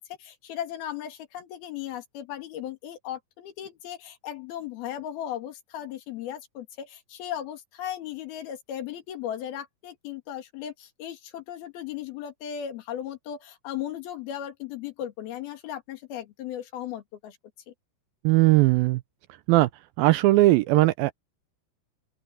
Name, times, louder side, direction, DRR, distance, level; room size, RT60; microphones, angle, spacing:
voice 1, 0.0-17.4 17.7-17.8, left 10 dB, 70° left, 4.0 m, -36 dB
voice 2, 18.2-19.0 19.5-19.7 20.0-21.1, right 18 dB, 80° right, 2.2 m, -19 dB
open air
omnidirectional pair, 4.6 m